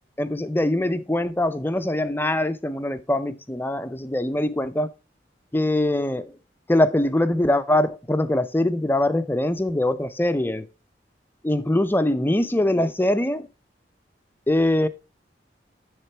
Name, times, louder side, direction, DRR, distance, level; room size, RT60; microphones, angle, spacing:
voice 1, 0.2-4.9 5.5-6.4 6.7-10.7 11.4-13.5 14.5-14.9, left 1 dB, 10° left, 0.5 m, -23 dB
10.0 x 3.7 x 4.4 m
head